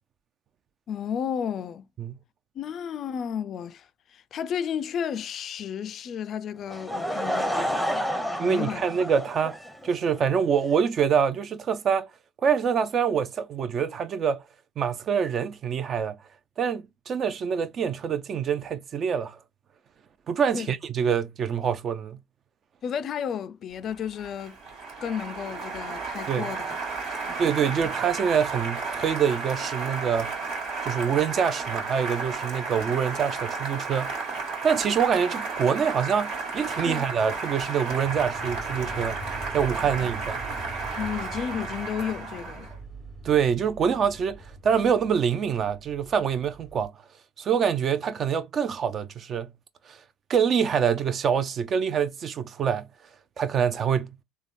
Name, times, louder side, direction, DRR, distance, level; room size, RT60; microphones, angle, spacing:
voice 1, 0.9-1.9 2.6-8.9 20.5-20.7 22.8-24.6 25.0-26.8 27.1-27.4 36.8-37.2 39.8-39.9 41.0-42.7, left 8 dB, 50° left, 0.3 m, -33 dB
Laughter / Crowd, 6.7-10.2, equal, 5° right, 0.8 m, -30 dB
voice 2, 8.4-9.6 9.8-12.1 12.4-14.4 14.8-16.2 16.6-19.4 20.3-22.2 26.3-26.5 27.4-30.4 30.8-34.1 34.6-39.2 39.5-40.4 43.2-46.9 47.4-49.5 49.9-50.0 50.3-52.9 53.4-54.2, right 7 dB, 45° right, 0.5 m, -25 dB
Applause, 23.9-42.8, right 4 dB, 60° right, 1.5 m, -33 dB
sound 1, 38.0-46.9, right 2 dB, 25° right, 1.2 m, -42 dB
3.4 x 2.1 x 2.5 m
hypercardioid pair, 75°, 0 cm